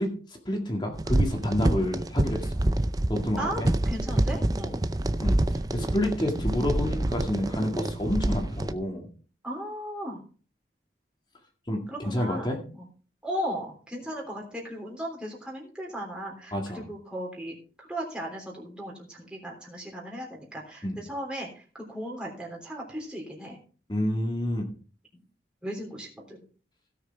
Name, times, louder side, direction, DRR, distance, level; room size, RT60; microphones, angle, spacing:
voice 1, 0.0-2.6 3.1-3.7 5.2-9.1 11.7-12.6 16.5-16.8 20.8-21.0 23.9-24.7, left 1 dB, 25° left, 2 dB, 2.0 m, -29 dB
sound 1, 0.9-8.7, right 1 dB, 20° right, 0.5 m, -27 dB
voice 2, 3.8-4.9 9.4-10.2 11.9-12.9 13.2-23.6 25.6-26.4, equal, 5° right, -3 dB, 3.4 m, -36 dB
17.0 x 6.6 x 4.5 m, 0.39 s
head